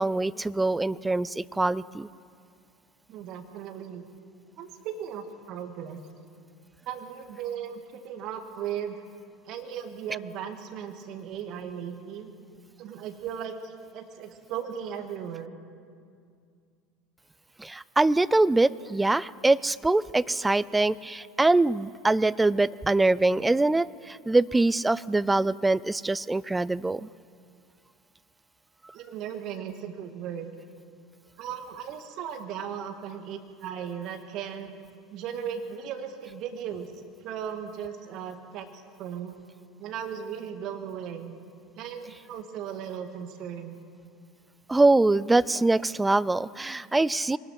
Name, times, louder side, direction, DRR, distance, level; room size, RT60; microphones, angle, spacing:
voice 1, 0.0-2.1 17.6-27.1 44.7-47.4, right 2 dB, 10° right, 18 dB, 0.4 m, -23 dB
voice 2, 3.1-4.0 4.6-6.0 6.9-9.1 9.5-12.3 12.8-15.6 28.9-30.5 31.4-34.7 35.1-36.9 37.2-38.7 39.0-39.3 39.8-41.3 41.8-43.8, right 8 dB, 50° right, 6 dB, 2.0 m, -37 dB
23.0 x 19.5 x 5.9 m, 2.3 s
figure-of-eight pair, 70°, 0 cm